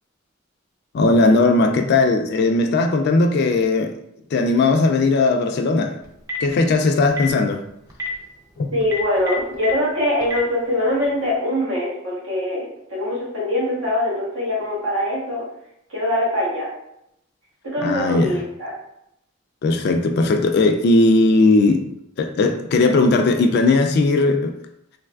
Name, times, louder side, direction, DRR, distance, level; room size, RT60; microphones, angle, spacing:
voice 1, 0.9-3.9 4.3-5.9 6.4-7.6 8.6-8.7 17.8-18.3 19.6-21.8 22.2-24.5, left 3 dB, 55° left, 0.3 m, -17 dB
Telephone, 6.0-6.5 7.1-7.3 7.9-8.1 8.8-9.7 10.2-10.4, left 1 dB, 20° right, 0.5 m, -28 dB
voice 2, 8.7-15.4 15.9-16.7 17.6-18.7, left 1 dB, 80° right, 1.2 m, -23 dB
3.3 x 3.0 x 2.3 m
head